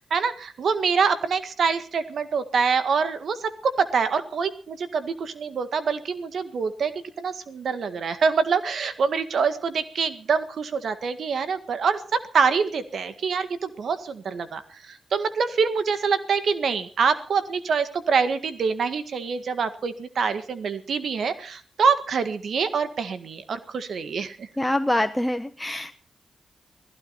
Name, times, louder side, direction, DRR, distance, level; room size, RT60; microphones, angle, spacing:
voice 1, 0.1-14.6 14.9-24.5, right 5 dB, 70° right, 10 dB, 1.8 m, -25 dB
voice 2, 24.6-26.0, left 1 dB, 10° left, 6 dB, 1.3 m, -25 dB
19.0 x 15.5 x 4.3 m, 0.40 s
supercardioid pair, 45°, 0 cm